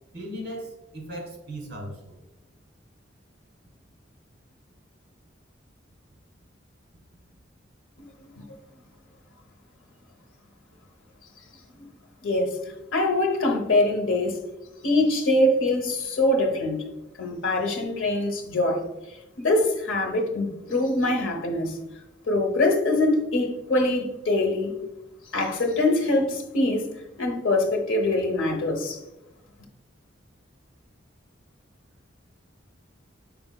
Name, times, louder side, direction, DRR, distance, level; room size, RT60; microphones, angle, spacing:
voice 1, 0.1-2.1, equal, 60° right, 1.5 m, -37 dB
voice 2, 8.0-8.4 11.8-11.9 12.2-12.6 12.9-14.4 14.8-16.9 17.2-18.8 19.1-21.8 22.3-24.8 25.3-26.9 27.2-29.0, left 2 dB, 90° left, 0.7 m, -24 dB
5.7 x 4.0 x 2.2 m
head